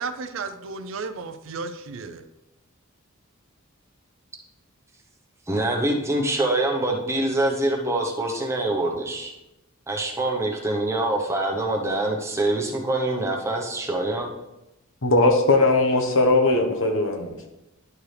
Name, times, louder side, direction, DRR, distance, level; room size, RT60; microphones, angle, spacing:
voice 1, 0.0-2.2, right 4 dB, 65° right, 10 dB, 0.5 m, -33 dB
voice 2, 5.5-9.3 9.9-14.3, right 2 dB, 15° right, 0 dB, 1.0 m, -25 dB
voice 3, 15.0-17.3, left 2 dB, 65° left, 4 dB, 1.1 m, -19 dB
11.0 x 4.7 x 3.3 m, 0.94 s
head